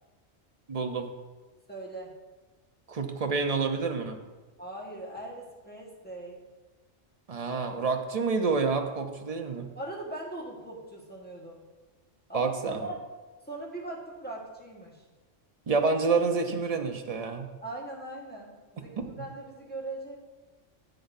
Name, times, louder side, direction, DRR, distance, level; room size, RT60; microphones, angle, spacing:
voice 1, 0.7-1.1 2.9-4.2 7.3-9.7 12.3-12.9 15.7-17.5 19.0-19.2, right 4 dB, 40° right, 5 dB, 0.6 m, -28 dB
voice 2, 1.7-2.1 4.6-6.4 9.8-11.6 12.3-13.0 13.5-15.0 17.6-20.2, right 2 dB, 10° left, -4 dB, 1.3 m, -40 dB
10.5 x 9.2 x 2.6 m, 1.3 s
omnidirectional pair, 1.3 m